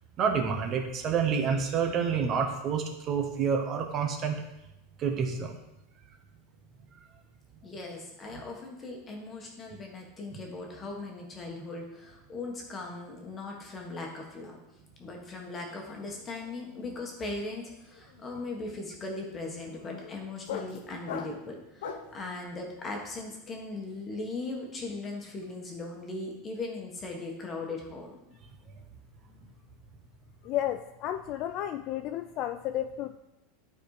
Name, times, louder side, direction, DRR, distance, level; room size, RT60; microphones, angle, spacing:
voice 1, 0.2-4.4 5.0-5.5 10.3-10.4, right 6 dB, 30° right, 4 dB, 0.9 m, -28 dB
voice 2, 7.6-14.6 15.0-28.2, left 3 dB, 15° left, 1 dB, 1.5 m, -39 dB
sound 1, 15.4-15.7 16.0-22.2, left 7 dB, 70° left, 0.8 m, -43 dB
voice 3, 30.4-33.2, left 12 dB, 35° left, 9 dB, 0.3 m, -32 dB
12.0 x 4.4 x 4.9 m, 0.92 s
supercardioid pair, 170°, 0 cm